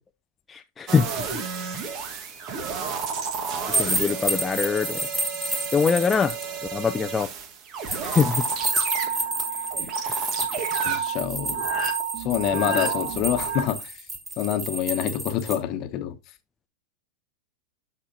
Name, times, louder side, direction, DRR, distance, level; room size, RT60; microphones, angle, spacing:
voice 1, 0.5-1.9 3.8-5.0 5.7-6.4 6.7-7.3 8.0-8.5 9.1-9.2 9.6-10.3 12.5-12.9, left 6 dB, 20° left, 0.4 m, -25 dB
sound 1, 0.9-13.6, right 6 dB, 45° right, 1.4 m, -31 dB
sound 2, 3.7-6.4 7.9-15.6, right 1 dB, 20° right, 2.8 m, -30 dB
voice 2, 10.8-11.6 12.2-13.9 14.4-16.2, left 11 dB, 45° left, 1.0 m, -26 dB
12.0 x 4.3 x 2.7 m
hypercardioid pair, 95°, 0 cm